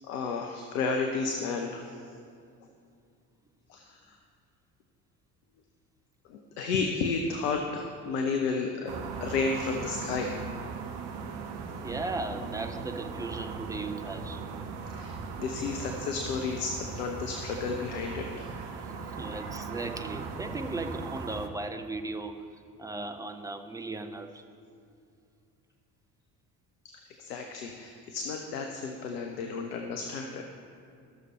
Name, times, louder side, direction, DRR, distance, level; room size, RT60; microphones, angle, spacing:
voice 1, 0.0-2.0 3.7-4.2 6.3-10.4 14.9-18.5 19.0-19.5 19.8-20.0 27.2-30.4, left 4 dB, 70° left, 3 dB, 0.8 m, -32 dB
sound 1, 8.9-21.5, right 5 dB, 55° right, 0.9 m, -38 dB
voice 2, 11.8-14.4 19.2-22.4 22.8-24.4, right 2 dB, 5° right, 6 dB, 0.6 m, -36 dB
13.5 x 6.6 x 4.3 m, 2.4 s
figure-of-eight pair, 55°, 47 cm